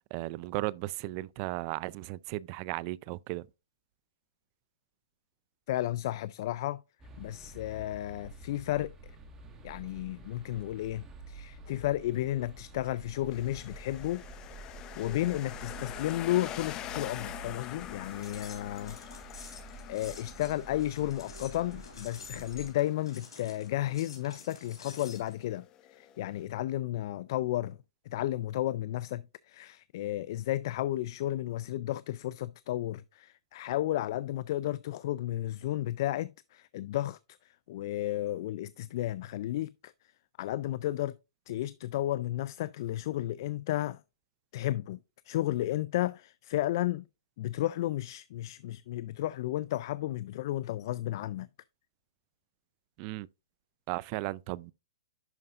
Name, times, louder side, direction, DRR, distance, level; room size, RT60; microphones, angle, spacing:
voice 1, 0.1-3.5 53.0-53.3 53.9-54.7, right 19 dB, 35° right, 0.3 m, -35 dB
voice 2, 5.7-6.8 7.2-8.9 9.6-14.7 15.0-19.0 19.4-27.8 28.1-39.9 40.4-41.2 41.5-44.0 44.5-45.0 45.2-47.0 47.4-51.5, left 14 dB, 50° left, 0.3 m, -33 dB
sound 1, 7.0-22.7, right 2 dB, 20° right, 1.6 m, -49 dB
sound 2, 13.3-26.5, left 12 dB, 25° left, 0.7 m, -46 dB
sound 3, 18.0-25.3, left 5 dB, 90° left, 3.5 m, -50 dB
11.0 x 5.4 x 2.5 m
hypercardioid pair, 140°, 3 cm